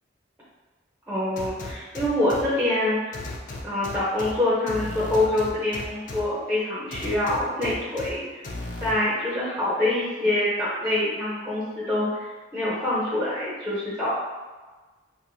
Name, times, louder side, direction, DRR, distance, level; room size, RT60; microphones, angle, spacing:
voice 1, 1.1-3.0 3.6-8.4 8.8-12.2 12.5-14.1, left 1 dB, 5° right, -9 dB, 0.6 m, -25 dB
sound 1, 1.4-2.4 3.1-4.3 4.7-6.2 6.9-8.1 8.4-8.9, left 2 dB, 40° left, 0.4 m, -35 dB
4.5 x 2.1 x 2.6 m, 1.3 s
head